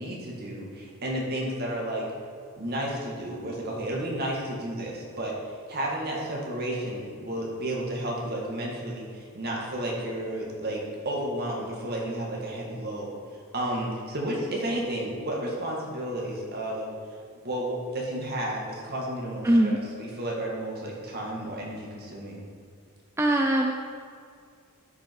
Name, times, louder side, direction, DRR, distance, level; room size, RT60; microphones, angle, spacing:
voice 1, 0.0-2.1 2.6-5.4 5.7-16.9 17.4-22.4, right 1 dB, 45° right, -2 dB, 2.0 m, -32 dB
voice 2, 19.4-19.8 23.2-23.7, right 1 dB, 10° right, 1 dB, 0.4 m, -21 dB
13.0 x 5.5 x 4.7 m, 2.2 s
head